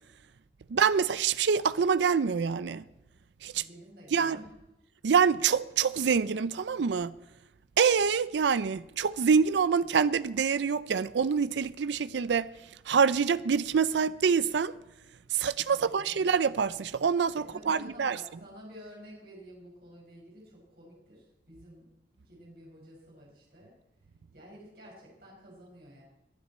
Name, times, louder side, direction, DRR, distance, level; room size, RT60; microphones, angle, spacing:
voice 1, 0.7-2.8 3.4-3.6 4.1-4.4 5.0-7.1 7.8-12.5 12.9-14.7 15.3-18.2, right 6 dB, 80° right, 0.4 m, -26 dB
voice 2, 3.5-4.5 15.7-16.2 17.4-21.8 22.1-23.7 24.3-26.0, equal, 55° right, 5.4 m, -51 dB
21.5 x 12.0 x 4.3 m
head